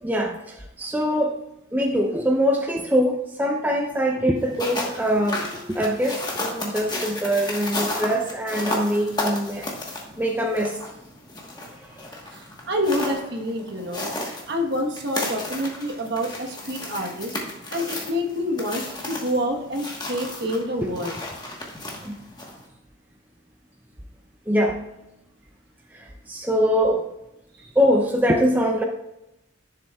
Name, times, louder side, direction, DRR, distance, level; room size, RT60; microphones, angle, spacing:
voice 1, 0.0-1.4 1.7-9.7 10.2-10.8 11.6-12.1 20.8-20.9 22.0-22.2 24.5-24.8 25.9-27.1 27.8-28.8, equal, 10° right, 1 dB, 0.5 m, -23 dB
sound 1, 4.4-22.7, left 2 dB, 20° left, 1.2 m, -33 dB
voice 2, 12.3-14.1 14.5-17.3 17.7-21.2 27.6-27.7, equal, 55° right, 3 dB, 1.2 m, -27 dB
11.0 x 6.9 x 2.3 m, 0.89 s
head